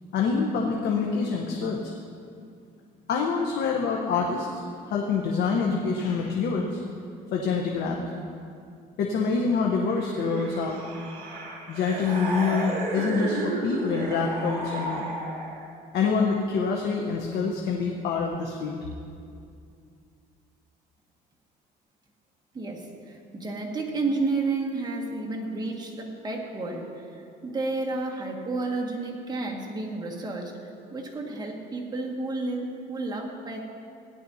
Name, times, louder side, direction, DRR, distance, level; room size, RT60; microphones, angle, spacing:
voice 1, 0.1-1.9 3.1-4.5 4.9-6.8 7.3-8.1 9.0-10.8 11.7-15.1 15.9-18.8, left 5 dB, 75° left, 0 dB, 1.0 m, -26 dB
sound 1, 9.9-15.7, right 2 dB, 65° right, 3.3 m, -33 dB
voice 2, 22.5-33.6, right 3 dB, 25° right, -2 dB, 1.8 m, -31 dB
17.0 x 11.0 x 2.8 m, 2.4 s
cardioid pair, 110°, 17 cm